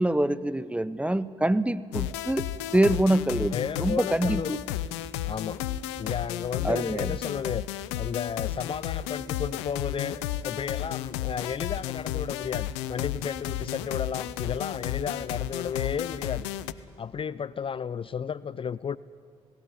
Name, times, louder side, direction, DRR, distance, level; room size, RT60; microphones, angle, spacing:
voice 1, 0.0-2.5 2.7-4.6 6.6-7.2, right 1 dB, 10° right, 16 dB, 0.8 m, -25 dB
sound 1, 1.9-16.7, left 12 dB, 85° left, 0.5 m, -33 dB
voice 2, 3.5-4.6 5.3-5.6 6.0-16.5 17.0-19.0, left 7 dB, 40° left, 19 dB, 0.4 m, -33 dB
17.5 x 16.5 x 9.7 m, 2.2 s
hypercardioid pair, 45°, 14 cm